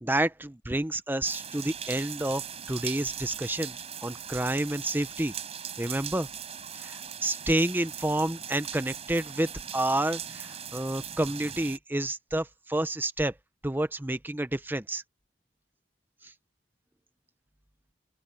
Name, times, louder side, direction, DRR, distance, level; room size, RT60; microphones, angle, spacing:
voice 1, 0.0-5.3 5.8-6.3 6.7-13.3 13.6-15.0 16.2-16.3, right 1 dB, 10° right, 0.8 m, -29 dB
sound 1, 1.2-11.8, right 8 dB, 35° right, 4.9 m, -40 dB
open air
head